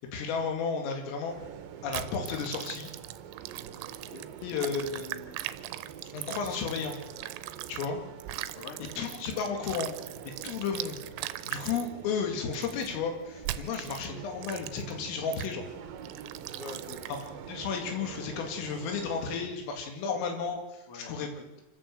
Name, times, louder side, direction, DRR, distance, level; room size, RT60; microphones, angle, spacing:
voice 1, 0.1-1.3 1.8-2.9 4.4-5.4 6.1-7.0 7.7-8.0 9.0-9.9 10.4-11.0 11.5-15.6 17.5-21.3, left 5 dB, 90° left, 3 dB, 5.0 m, -33 dB
sound 1, 1.3-19.5, right 8 dB, 70° right, 2.3 m, -46 dB
sound 2, 1.9-7.9 8.2-11.9 12.5-12.9 13.4-14.1 14.4-14.9 15.3-15.5 16.0-17.3, right 15 dB, 85° right, 3.4 m, -40 dB
voice 2, 3.9-4.3 8.5-8.8 10.4-10.5 16.5-17.1 20.9-21.5, left 3 dB, 45° left, 4 dB, 2.0 m, -46 dB
27.0 x 13.0 x 7.8 m, 1.1 s
omnidirectional pair, 5.7 m